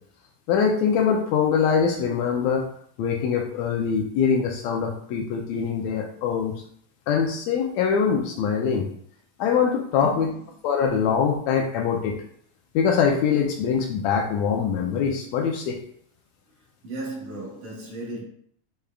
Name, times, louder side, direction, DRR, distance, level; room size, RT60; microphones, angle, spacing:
voice 1, 0.5-2.7 3.0-6.5 7.1-8.9 9.4-10.3 10.6-12.1 12.8-15.8, left 6 dB, 80° left, 1.7 m, -23 dB
voice 2, 16.8-18.2, right 2 dB, 65° right, 2.2 m, -35 dB
6.5 x 3.5 x 2.3 m
omnidirectional pair, 3.4 m